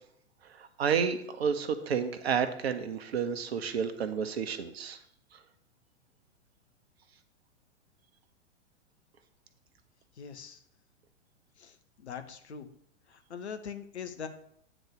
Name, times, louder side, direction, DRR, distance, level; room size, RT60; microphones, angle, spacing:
voice 1, 0.5-5.0 5.3-5.4, right 7 dB, 55° right, 10 dB, 1.0 m, -31 dB
voice 2, 10.2-10.6 11.6-12.7 13.1-14.3, left 7 dB, 65° left, 8 dB, 1.0 m, -42 dB
8.9 x 4.0 x 6.6 m, 0.68 s
figure-of-eight pair, 105°, 36 cm